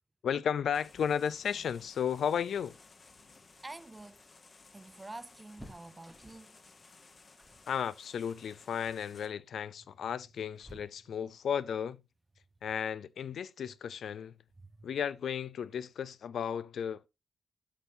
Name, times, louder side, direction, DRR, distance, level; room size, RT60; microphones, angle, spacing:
voice 1, 0.2-2.8 7.7-12.0 12.6-14.3 14.8-17.0, left 8 dB, 70° left, 0.6 m, -34 dB
sound 1, 0.7-9.3, left 4 dB, 35° left, 1.1 m, -58 dB
voice 2, 3.6-4.2 4.7-6.6, right 2 dB, 15° right, 0.4 m, -47 dB
sound 2, 4.6-6.6 7.4-7.7 8.0-8.3 8.7-9.1 9.9-11.4 13.1-13.2 13.6-13.7 14.8-15.3 15.6-15.7 16.0-16.2, equal, ahead, 1.2 m, -56 dB
11.5 x 6.2 x 2.8 m
wide cardioid pair, 175°, 0 cm